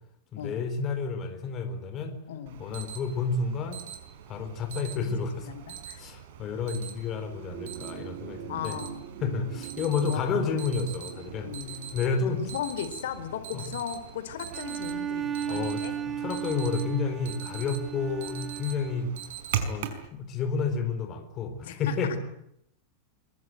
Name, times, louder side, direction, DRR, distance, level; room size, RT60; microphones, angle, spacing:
voice 1, 0.3-2.2 2.6-3.8 4.3-5.5 6.0-8.8 9.2-11.5 11.9-12.4 13.5-13.6 15.5-19.1 19.7-22.2, left 5 dB, 25° left, 7 dB, 4.2 m, -30 dB
voice 2, 2.3-2.7 5.1-6.0 8.5-9.0 10.0-10.6 11.4-12.0 12.3-16.0 21.6-21.9, left 9 dB, 80° left, 11 dB, 4.1 m, -37 dB
Alarm, 2.5-20.1, right 9 dB, 65° right, 5.3 m, -41 dB
sound 1, 7.2-15.9 17.1-17.2, right 11 dB, 50° right, 4.9 m, -45 dB
Bowed string instrument, 14.5-19.2, right 9 dB, 15° right, 1.2 m, -35 dB
25.0 x 23.0 x 9.3 m, 0.75 s
supercardioid pair, 165°, 0 cm